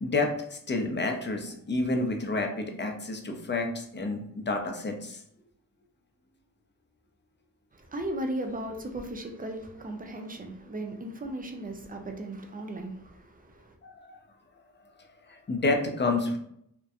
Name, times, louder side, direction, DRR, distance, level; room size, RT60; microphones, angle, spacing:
voice 1, 0.0-5.2 13.8-14.2 15.3-16.4, left 2 dB, 30° left, 0.6 m, -29 dB
voice 2, 7.7-13.8, right 1 dB, 25° right, 0.5 m, -36 dB
2.6 x 2.1 x 2.4 m
cardioid pair, 45°, 35 cm